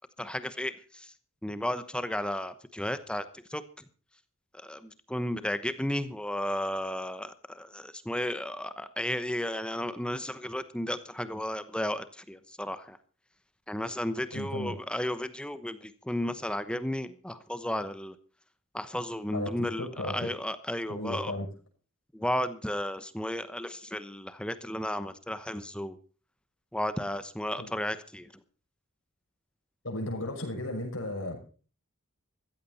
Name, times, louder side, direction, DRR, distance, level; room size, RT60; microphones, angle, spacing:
voice 1, 0.2-1.1 1.4-3.6 4.6-13.0 13.7-18.1 18.7-21.3 22.1-26.0 26.7-28.3, left 1 dB, 5° left, 12 dB, 0.9 m, -33 dB
voice 2, 14.3-14.7 19.3-20.3 20.9-21.5 27.6-27.7 29.8-31.5, left 1 dB, 60° left, 1 dB, 6.4 m, -35 dB
15.5 x 14.5 x 4.2 m, 0.38 s
head